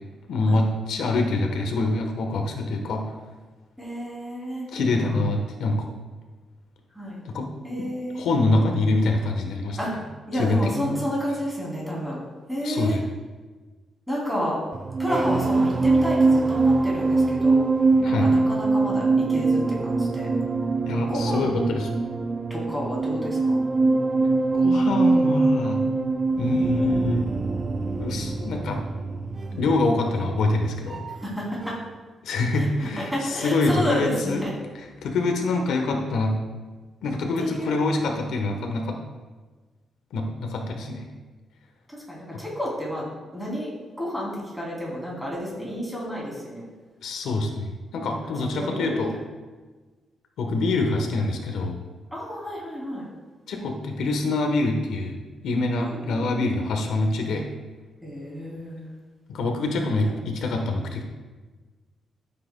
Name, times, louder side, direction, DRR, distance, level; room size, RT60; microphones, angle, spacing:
voice 1, 0.3-3.1 4.7-5.9 7.2-7.5 7.8-7.9 8.1-9.8 10.3-10.9 12.6-13.0 18.0-18.3 20.9-22.0 24.6-25.8 26.4-27.3 28.0-28.9 29.6-31.0 32.2-34.4 35.0-36.4 37.0-39.0 40.1-41.1 42.3-42.4 47.0-49.2 50.4-51.8 53.5-55.2 55.4-57.5 59.3-61.0, left 2 dB, 85° left, 3 dB, 1.1 m, -25 dB
voice 2, 3.8-5.2 6.9-7.2 7.6-8.2 9.8-12.2 12.5-13.0 14.1-14.6 15.0-17.7 18.0-20.3 21.1-21.5 22.5-23.6 29.5-29.7 31.1-31.8 32.5-32.7 33.0-34.5 37.4-37.9 41.9-46.7 48.1-48.2 48.5-49.1 52.1-53.1 55.8-56.6 58.0-58.9 60.0-60.1, equal, ahead, -5 dB, 2.9 m, -31 dB
sound 1, 14.7-31.4 31.6-32.0, right 3 dB, 25° right, 0.4 m, -23 dB
13.0 x 7.7 x 2.2 m, 1.3 s
cardioid pair, 145°, 0 cm